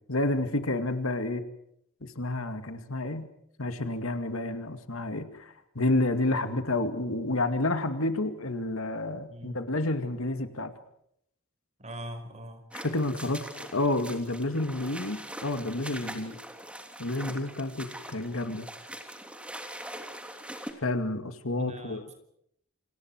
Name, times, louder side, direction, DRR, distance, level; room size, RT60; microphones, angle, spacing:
voice 1, 0.1-1.4 2.0-3.3 3.6-10.7 12.7-13.4 13.7-16.4 17.0-18.7 20.8-22.0, left 2 dB, 70° left, 8 dB, 2.4 m, -30 dB
voice 2, 9.3-9.6 11.8-12.6 21.6-22.1, equal, 35° right, 8 dB, 4.9 m, -41 dB
sound 1, 12.7-20.7, right 1 dB, 5° right, 3.2 m, -42 dB
28.5 x 28.0 x 4.8 m, 0.73 s
head